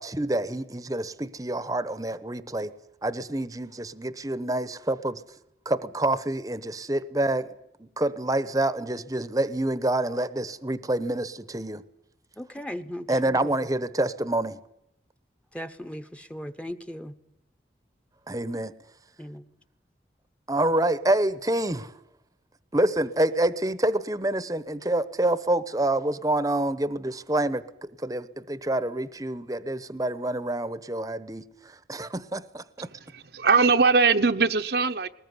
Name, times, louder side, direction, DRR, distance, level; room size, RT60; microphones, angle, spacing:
voice 1, 0.0-2.7 3.0-5.2 5.6-7.5 7.8-11.8 13.1-14.6 18.3-18.7 20.5-21.9 22.7-32.9, right 1 dB, 20° right, 0.9 m, -27 dB
voice 2, 12.4-13.5 15.5-17.1 19.2-19.4, equal, 5° left, 1.0 m, -37 dB
voice 3, 32.8-35.1, right 4 dB, 65° right, 0.9 m, -21 dB
20.5 x 20.0 x 9.6 m
head